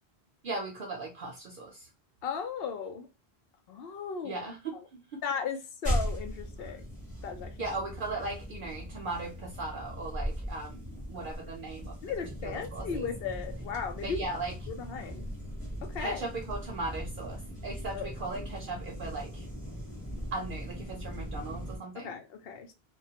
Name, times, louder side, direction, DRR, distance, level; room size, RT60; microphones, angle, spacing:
voice 1, 0.4-1.9 4.2-5.2 7.6-12.0 12.4-13.1 14.0-14.5 16.0-19.5 20.3-22.1, right 3 dB, 60° right, 0.7 m, -38 dB
voice 2, 2.2-3.1 3.7-4.4 5.2-6.9 7.2-7.5 12.0-14.2 14.7-15.3 15.8-16.3 17.9-18.1 22.0-22.7, left 6 dB, 70° left, 0.8 m, -36 dB
sound 1, 5.8-21.8, equal, 10° left, 0.8 m, -38 dB
2.2 x 2.2 x 2.7 m
omnidirectional pair, 1.1 m